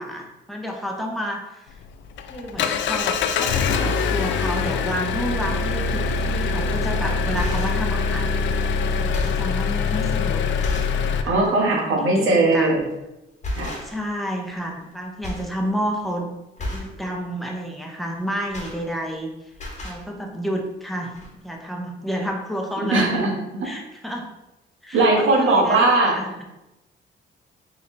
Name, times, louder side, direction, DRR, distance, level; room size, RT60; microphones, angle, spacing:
voice 1, 0.0-1.7 2.3-8.3 9.0-12.9 13.6-16.3 16.6-19.3 19.8-23.1 23.6-24.3 24.8-26.4, equal, ahead, 0 dB, 0.8 m, -30 dB
Engine, 1.7-11.2, left 5 dB, 70° left, 0.4 m, -23 dB
sound 1, 6.6-6.7 7.2-7.9 8.5-8.6 9.0-9.5 10.1-10.2 10.6-11.0 11.4-11.6 12.8-13.0 13.4-14.2 14.5-14.9 15.2-15.5 15.9-16.1 16.6-17.0 18.1-19.2 19.5-20.0 20.8-20.9 21.1-21.3, left 1 dB, 35° left, 1.2 m, -32 dB
voice 2, 11.3-12.8 13.6-13.7 22.9-23.7 24.9-26.2, right 2 dB, 80° right, -2 dB, 1.3 m, -19 dB
4.2 x 3.6 x 2.7 m, 0.95 s
cardioid pair, 90°, 20 cm